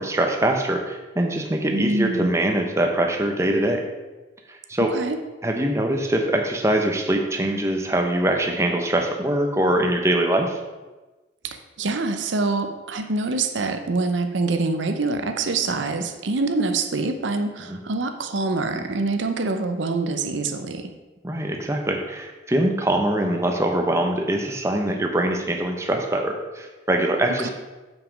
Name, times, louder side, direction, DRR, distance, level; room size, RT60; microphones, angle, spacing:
voice 1, 0.0-3.8 4.5-4.9 5.4-10.6 17.7-17.8 21.2-27.5, right 1 dB, 15° right, 3 dB, 0.7 m, -23 dB
voice 2, 1.7-2.4 4.8-5.2 11.5-20.9 27.4-27.5, right 3 dB, 75° right, 7 dB, 0.7 m, -25 dB
7.4 x 5.9 x 5.1 m, 1.2 s
head